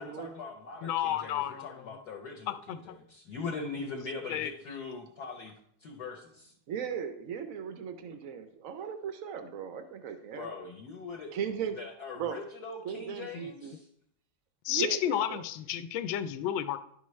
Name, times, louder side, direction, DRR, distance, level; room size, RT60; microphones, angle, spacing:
voice 1, 0.2-5.5 5.8-6.5 10.4-11.3 11.8-13.9, left 4 dB, 60° left, 1 dB, 1.2 m, -41 dB
voice 2, 0.8-2.0 2.7-2.8 4.3-4.5 13.3-13.5 14.6-16.8, left 11 dB, 80° left, 11 dB, 1.3 m, -32 dB
voice 3, 6.7-10.5 11.3-11.8 12.2-12.4 12.8-13.8 14.7-15.4, right 7 dB, 75° right, 8 dB, 0.7 m, -37 dB
10.5 x 6.0 x 3.1 m, 0.68 s
omnidirectional pair, 2.2 m